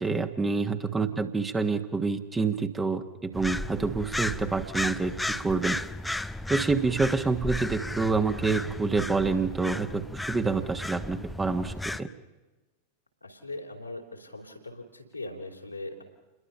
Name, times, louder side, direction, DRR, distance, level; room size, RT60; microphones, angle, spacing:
voice 1, 0.0-5.8 6.1-10.0 10.3-12.1, right 4 dB, 15° right, 8 dB, 1.5 m, -27 dB
voice 2, 0.9-1.2 13.2-16.0, left 2 dB, 85° left, 1 dB, 3.3 m, -40 dB
sound 1, 3.3-12.0, left 1 dB, 5° left, 0.6 m, -34 dB
28.5 x 21.5 x 5.7 m, 1.1 s
figure-of-eight pair, 90°, 0 cm